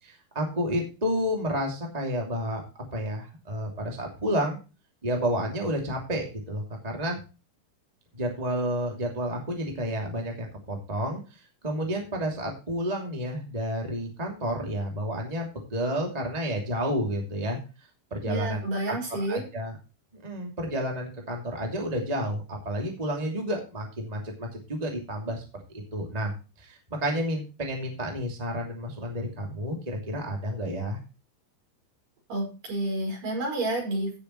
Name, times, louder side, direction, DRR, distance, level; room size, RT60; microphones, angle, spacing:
voice 1, 0.0-2.6 2.9-4.6 5.0-7.2 8.1-17.6 18.1-18.6 18.9-19.0 19.3-19.8 20.2-25.4 25.9-26.3 26.6-31.0, equal, 15° right, 0 dB, 1.7 m, -30 dB
voice 2, 18.2-19.4 32.3-34.2, right 1 dB, 45° right, 0 dB, 6.8 m, -30 dB
16.5 x 7.0 x 3.2 m, 0.31 s
omnidirectional pair, 5.2 m